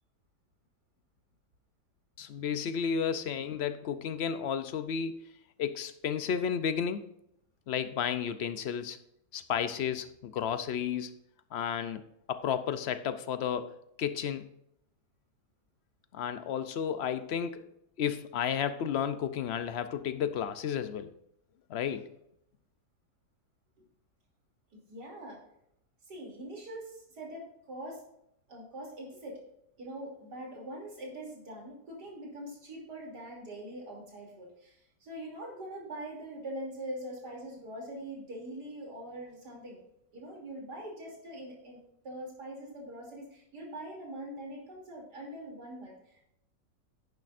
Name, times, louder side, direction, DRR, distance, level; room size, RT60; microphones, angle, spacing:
voice 1, 2.2-5.3 5.6-7.1 7.7-9.0 9.3-11.1 11.5-12.0 12.3-13.7 14.0-14.5 16.1-17.7 18.0-21.1 21.7-22.1, left 8 dB, 70° left, 0.6 m, -32 dB
voice 2, 24.9-25.4 26.1-28.0 28.5-29.4 29.8-39.8 40.1-41.8 42.0-46.3, right 1 dB, 75° right, 3.5 m, -43 dB
10.5 x 9.8 x 2.5 m
omnidirectional pair, 1.8 m